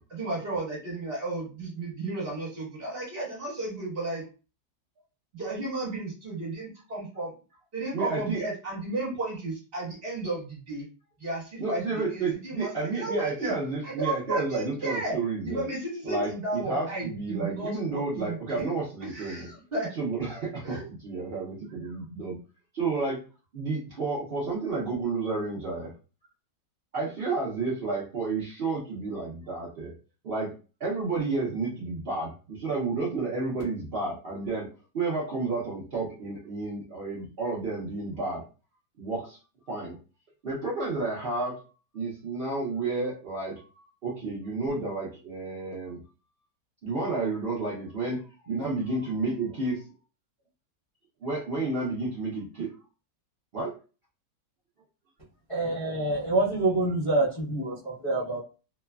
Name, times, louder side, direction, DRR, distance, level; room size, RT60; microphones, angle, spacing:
voice 1, 0.1-4.2 5.3-7.3 7.7-10.9 11.2-13.6 13.8-15.2 15.4-18.7 19.0-19.9 20.6-20.8, right 2 dB, 35° right, -5 dB, 1.3 m, -33 dB
voice 2, 7.9-8.4 11.6-15.7 16.0-19.5 20.0-22.4 22.7-23.2 23.5-25.9 26.9-29.9 30.2-30.5 30.8-34.7 34.9-38.4 39.0-39.4 39.7-40.0 40.4-41.6 41.9-46.0 46.8-49.9 51.2-52.7 53.5-53.7, right 3 dB, 65° right, -6 dB, 0.5 m, -31 dB
voice 3, 55.5-58.4, right 2 dB, 40° left, -8 dB, 0.4 m, -26 dB
3.1 x 2.1 x 2.2 m, 0.34 s
omnidirectional pair, 1.9 m